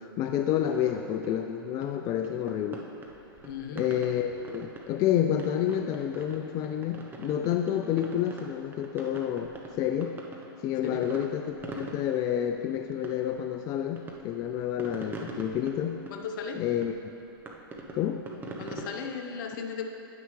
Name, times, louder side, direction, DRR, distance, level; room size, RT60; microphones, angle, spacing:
voice 1, 0.0-2.8 3.8-10.1 10.6-16.0 16.5-16.9 17.9-18.2, left 10 dB, 30° left, 5 dB, 0.3 m, -29 dB
sound 1, 0.7-18.9, right 3 dB, 15° right, 0.8 m, -45 dB
voice 2, 3.4-3.9 10.8-11.1 15.3-15.4 16.1-16.6 18.6-19.9, left 6 dB, 55° left, 4 dB, 0.9 m, -36 dB
9.4 x 9.4 x 3.2 m, 2.8 s
hypercardioid pair, 125°, 13 cm